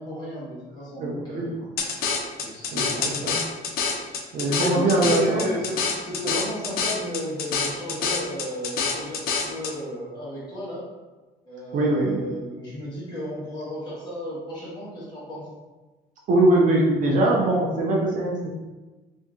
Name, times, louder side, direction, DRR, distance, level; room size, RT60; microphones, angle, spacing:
voice 1, 0.0-1.7 2.4-3.1 4.0-4.2 4.4-10.8 11.4-15.5, equal, 25° left, -8 dB, 1.3 m, -33 dB
voice 2, 1.0-1.5 2.7-3.3 4.3-5.5 11.7-12.2 16.3-18.5, right 1 dB, 45° right, -2 dB, 0.6 m, -22 dB
sound 1, 1.8-9.7, left 5 dB, 55° left, 0.5 m, -27 dB
2.7 x 2.6 x 3.6 m, 1.2 s
cardioid pair, 160°, 18 cm